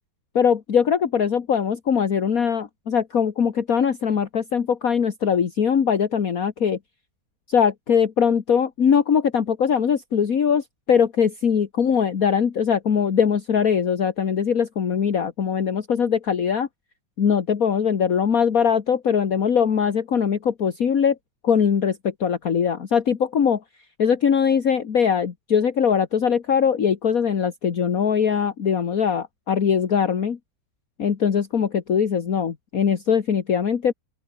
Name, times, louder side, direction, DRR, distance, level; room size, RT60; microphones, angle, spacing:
voice 1, 0.4-6.8 7.5-16.7 17.2-21.2 21.4-23.6 24.0-30.4 31.0-33.9, left 7 dB, 50° left, 1.9 m, -21 dB
open air
omnidirectional pair, 2.0 m